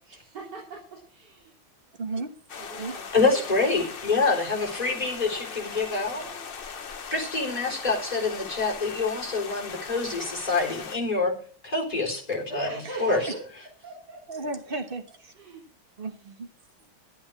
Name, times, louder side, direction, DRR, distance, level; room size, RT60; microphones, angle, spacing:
voice 1, 0.0-1.6 2.6-4.4 6.1-6.4 12.5-13.4 13.8-14.8 15.3-15.8, right 1 dB, 55° right, -3 dB, 3.8 m, -41 dB
voice 2, 2.0-2.3 2.8-2.9 14.3-15.3 16.0-16.5, right 3 dB, 30° right, 6 dB, 1.2 m, -34 dB
sound 1, 2.5-11.0, left 6 dB, 65° left, 0.5 m, -39 dB
voice 3, 3.1-6.2 7.1-11.3 11.6-12.7 13.0-13.2, left 3 dB, 20° left, 0 dB, 4.1 m, -26 dB
12.0 x 8.8 x 6.4 m, 0.42 s
omnidirectional pair, 2.3 m